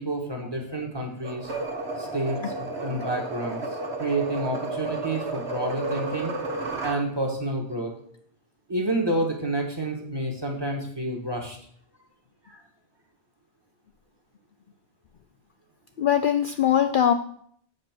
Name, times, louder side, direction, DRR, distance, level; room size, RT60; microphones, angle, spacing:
voice 1, 0.0-1.5 2.0-3.6 4.0-6.3 6.8-7.9 8.7-11.6, right 1 dB, 20° right, 1 dB, 1.5 m, -29 dB
sound 1, 1.2-7.0, right 3 dB, 70° right, 1.7 m, -32 dB
voice 2, 16.0-17.1, left 9 dB, 60° left, 7 dB, 0.6 m, -21 dB
7.7 x 5.3 x 6.0 m, 0.63 s
omnidirectional pair, 1.2 m